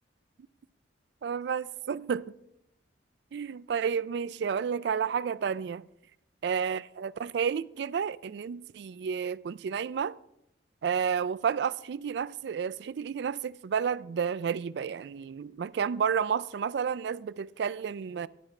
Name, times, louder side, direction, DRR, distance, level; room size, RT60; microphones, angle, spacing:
voice 1, 1.2-2.3 3.3-5.9 6.4-10.2 10.8-18.3, right 7 dB, 65° right, 0.3 m, -31 dB
14.5 x 10.0 x 3.2 m
head